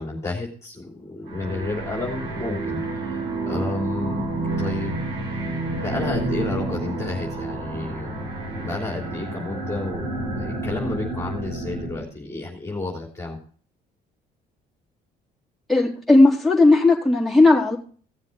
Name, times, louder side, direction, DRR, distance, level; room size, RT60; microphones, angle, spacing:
voice 1, 0.0-4.3 4.6-5.0 5.7-13.4, left 2 dB, 15° left, -2 dB, 3.3 m, -31 dB
sound 1, 1.3-12.0, right 2 dB, 90° right, 6.6 m, -29 dB
voice 2, 15.7-17.8, left 2 dB, ahead, -5 dB, 3.9 m, -16 dB
17.5 x 7.4 x 4.0 m, 0.43 s
cardioid pair, 110°, 17 cm